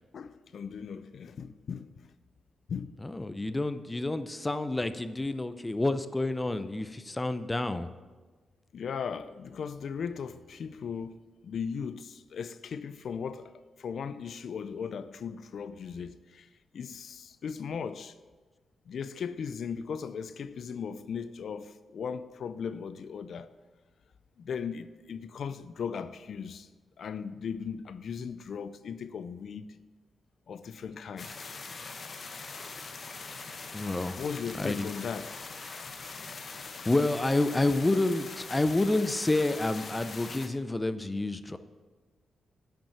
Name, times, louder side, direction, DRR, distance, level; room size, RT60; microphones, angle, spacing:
voice 1, 0.1-1.9 2.7-3.0 8.7-11.2 11.4-13.5 13.8-16.5 16.7-18.1 18.9-23.5 24.4-26.7 27.0-29.7 30.5-31.3 34.1-35.4, left 6 dB, 70° left, 0.4 m, -37 dB
voice 2, 3.0-7.9 33.7-34.2 34.5-34.9 36.9-41.6, left 2 dB, 20° left, 0.5 m, -29 dB
sound 1, 31.2-40.5, left 4 dB, 50° left, 0.9 m, -42 dB
8.8 x 5.4 x 7.2 m
cardioid pair, 75°, 0 cm